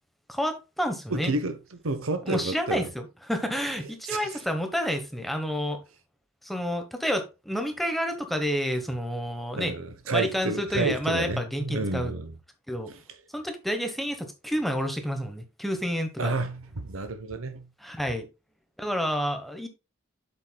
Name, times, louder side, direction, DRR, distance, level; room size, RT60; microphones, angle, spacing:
voice 1, 0.3-1.3 2.3-5.8 6.4-9.7 10.1-12.1 12.7-12.9 13.3-16.3 17.8-18.3 18.8-19.7, equal, ahead, 1.1 m, -29 dB
voice 2, 1.1-1.6 1.8-2.9 4.1-4.3 9.6-12.3 12.9-13.0 16.2-17.7, right 3 dB, 80° right, 1.1 m, -30 dB
7.8 x 7.4 x 2.3 m
head